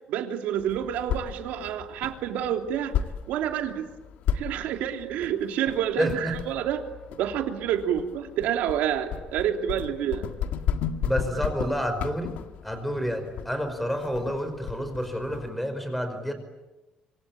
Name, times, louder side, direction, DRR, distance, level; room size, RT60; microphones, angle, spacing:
voice 1, 0.1-2.9 3.3-3.9 4.3-6.8 7.2-10.3, right 10 dB, 85° right, 5 dB, 3.1 m, -28 dB
sound 1, 0.6-15.5, left 8 dB, 75° left, 1.7 m, -34 dB
voice 2, 6.0-6.3 11.0-12.3 12.6-16.3, equal, 5° left, 8 dB, 5.2 m, -29 dB
27.0 x 25.5 x 8.8 m, 1.1 s
cardioid pair, 140°, 3 cm